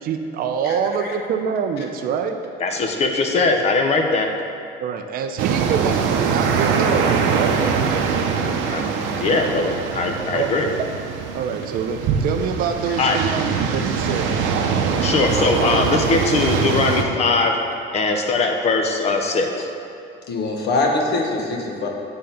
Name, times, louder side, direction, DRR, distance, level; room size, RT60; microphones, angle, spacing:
voice 1, 0.0-2.4 4.8-7.6 10.3-10.5 11.3-14.3, right 7 dB, 45° right, 6 dB, 0.5 m, -25 dB
voice 2, 0.7-1.1 15.7-15.8 20.3-21.9, left 2 dB, 55° left, 1 dB, 1.0 m, -23 dB
voice 3, 2.6-4.3 8.7-8.8 9.2-10.7 13.0-13.2 15.0-17.6 17.9-19.7, left 3 dB, 35° left, 4 dB, 0.5 m, -20 dB
sound 1, 5.4-17.0, right 6 dB, 80° right, 0.7 m, -22 dB
8.9 x 3.8 x 5.6 m, 2.4 s
cardioid pair, 175°, 20 cm